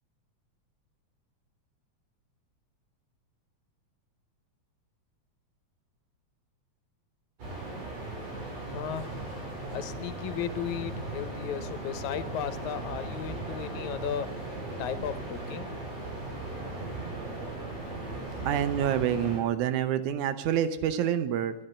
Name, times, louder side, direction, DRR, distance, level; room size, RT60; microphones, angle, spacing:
sound 1, 7.4-19.4, right 2 dB, 60° right, 7.0 m, -37 dB
voice 1, 8.7-9.1 9.7-14.3 14.8-15.7, left 9 dB, 80° left, 12 dB, 2.2 m, -35 dB
voice 2, 18.5-21.5, right 10 dB, 85° right, 12 dB, 2.4 m, -27 dB
12.5 x 10.5 x 8.9 m, 0.94 s
omnidirectional pair, 3.4 m